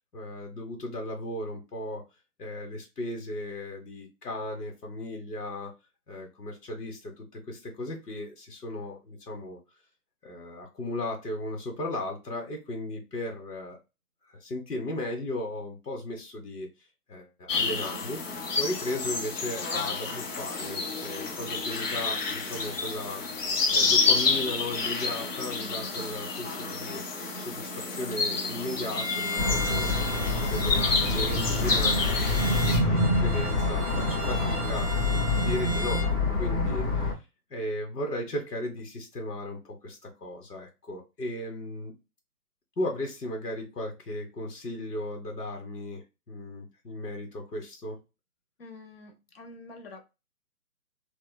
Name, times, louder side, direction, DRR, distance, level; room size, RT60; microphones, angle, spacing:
voice 1, 0.1-2.0 2.4-5.7 6.1-9.6 10.2-13.8 14.3-16.7 17.1-18.2 18.6-23.2 23.7-29.9 30.3-34.9 35.3-36.0 36.3-37.2 37.5-41.9 42.8-48.0, left 1 dB, 85° left, 2 dB, 1.2 m, -36 dB
sound 1, 17.5-32.8, left 4 dB, 55° left, 1.3 m, -29 dB
voice 2, 25.6-26.0 32.6-32.9 48.6-50.1, left 1 dB, 40° left, 4 dB, 0.9 m, -46 dB
Bowed string instrument, 28.9-36.2, equal, 15° right, 0.7 m, -37 dB
sound 2, 29.4-37.1, left 2 dB, 25° left, 1.8 m, -26 dB
4.4 x 2.4 x 2.2 m, 0.27 s
hypercardioid pair, 150°, 46 cm